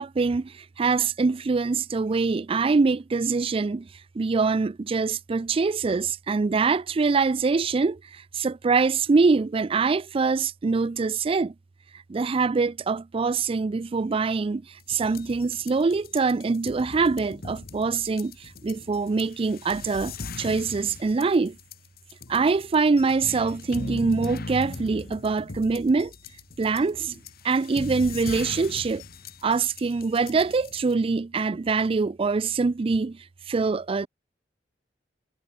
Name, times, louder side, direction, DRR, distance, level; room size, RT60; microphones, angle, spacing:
voice 1, 0.0-3.9 4.1-11.5 12.1-21.6 22.3-26.1 26.6-27.2 27.4-29.0 29.4-33.2 33.5-34.1, right 4 dB, 30° right, 0.4 m, -24 dB
sound 1, 14.8-30.9, left 3 dB, 55° left, 1.5 m, -39 dB
head